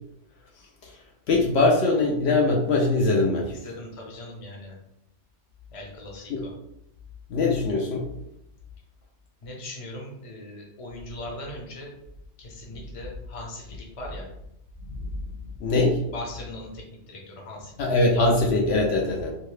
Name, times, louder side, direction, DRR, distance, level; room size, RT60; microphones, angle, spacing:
voice 1, 1.3-3.5 6.3-6.4 7.3-8.1 15.6-16.0 17.8-19.3, left 2 dB, 70° left, -1 dB, 0.8 m, -22 dB
voice 2, 3.5-4.8 5.7-6.5 9.4-11.9 12.4-14.3 16.1-18.1, left 1 dB, 35° left, -1 dB, 0.7 m, -40 dB
2.8 x 2.7 x 3.2 m, 0.80 s
omnidirectional pair, 1.2 m